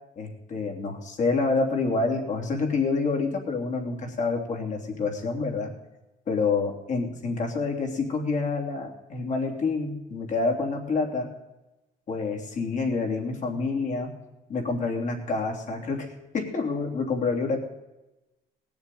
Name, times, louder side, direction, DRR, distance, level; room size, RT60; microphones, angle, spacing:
voice 1, 0.2-5.7 6.3-11.3 12.1-14.1 14.5-16.1 16.3-17.6, left 4 dB, 45° left, 2 dB, 3.3 m, -27 dB
18.5 x 7.2 x 9.3 m, 1.0 s
cardioid pair, 110°, 17 cm